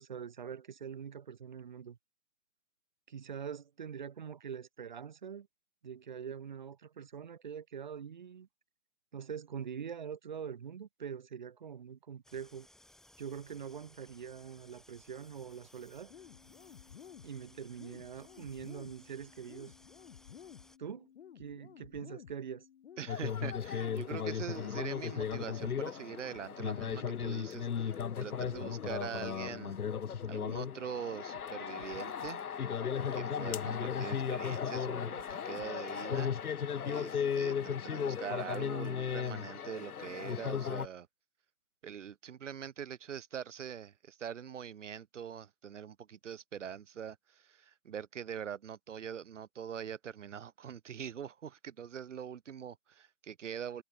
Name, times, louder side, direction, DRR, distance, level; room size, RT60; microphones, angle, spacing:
voice 1, 0.0-2.0 3.1-5.5 5.8-8.5 9.1-12.7 13.2-16.1 17.2-19.7 20.8-21.1 21.4-22.7, right 7 dB, 30° right, 0.6 m, -44 dB
sound 1, 12.2-20.8, left 1 dB, ahead, 2.7 m, -62 dB
sound 2, 16.1-36.1, left 9 dB, 45° left, 1.8 m, -54 dB
voice 2, 23.0-29.8 30.3-32.4 32.9-41.1 41.8-53.8, right 8 dB, 50° right, 3.0 m, -43 dB
sound 3, 23.1-40.9, left 7 dB, 70° left, 1.4 m, -36 dB
hypercardioid pair, 155°, 45 cm